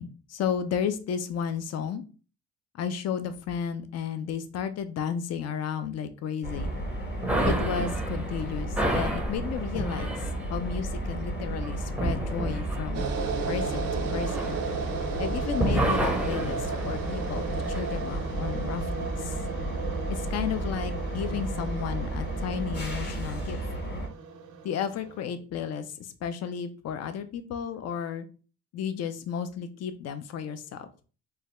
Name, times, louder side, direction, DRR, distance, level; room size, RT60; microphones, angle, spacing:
voice 1, 0.0-2.0 2.7-6.7 7.5-10.2 10.5-13.0 13.5-14.5 15.2-19.3 20.1-23.6 24.6-28.3 28.7-30.9, left 8 dB, 60° left, 10 dB, 0.5 m, -33 dB
sound 1, 6.4-24.1, right 1 dB, 35° left, 0.9 m, -33 dB
sound 2, 7.2-15.2 15.5-17.9, right 1 dB, 5° right, 0.5 m, -31 dB
sound 3, 12.9-25.2, right 5 dB, 80° right, 0.6 m, -35 dB
3.2 x 2.3 x 2.9 m, 0.36 s
cardioid pair, 90°, 30 cm